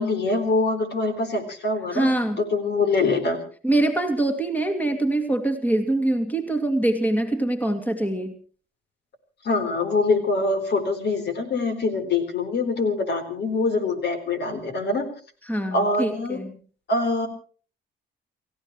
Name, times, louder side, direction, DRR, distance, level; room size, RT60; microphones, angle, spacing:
voice 1, 0.0-2.1 2.4-3.4 9.4-15.1 15.7-16.4 16.9-17.3, left 3 dB, 60° left, 9 dB, 4.2 m, -24 dB
voice 2, 1.9-2.4 3.6-8.3 15.4-16.6, right 1 dB, 10° left, 5 dB, 2.6 m, -24 dB
29.5 x 15.5 x 3.2 m, 0.42 s
cardioid pair, 90°, 20 cm